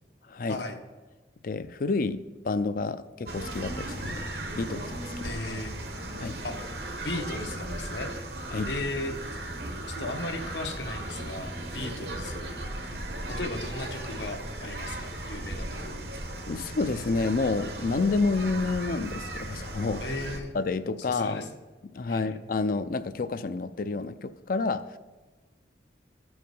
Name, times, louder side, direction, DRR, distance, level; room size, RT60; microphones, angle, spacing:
voice 1, 0.3-0.6 1.4-4.2 4.5-5.3 6.2-6.4 8.5-8.7 12.9-13.0 16.5-20.0 20.5-21.4 21.8-24.8, left 3 dB, 50° left, 13 dB, 0.4 m, -29 dB
sound 1, 3.3-20.4, right 1 dB, 65° right, 1.0 m, -36 dB
voice 2, 5.2-5.7 6.4-6.7 7.0-8.1 8.6-9.2 9.9-12.5 13.3-16.1 20.0-20.5 21.0-21.5 22.1-22.4, left 2 dB, 80° left, 4 dB, 1.0 m, -36 dB
13.5 x 4.8 x 5.3 m, 1.3 s
head